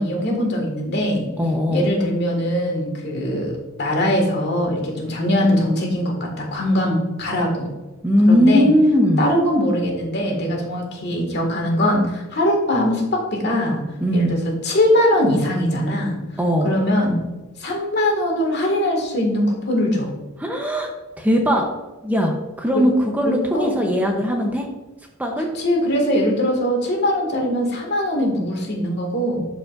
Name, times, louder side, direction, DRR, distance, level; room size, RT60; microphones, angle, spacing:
voice 1, 0.0-1.3 1.7-3.5 3.8-7.7 8.3-8.7 9.2-13.8 14.1-14.4 14.6-16.2 16.6-17.2 17.6-20.1 23.5-23.7 25.4-29.5, left 1 dB, 55° left, 1 dB, 1.9 m, -21 dB
voice 2, 1.4-1.9 8.0-9.3 14.0-14.3 16.4-16.7 20.4-20.9 21.2-21.7 22.0-24.7 25.2-25.5, equal, 10° right, 1 dB, 0.8 m, -19 dB
12.0 x 5.1 x 2.5 m, 1.1 s
head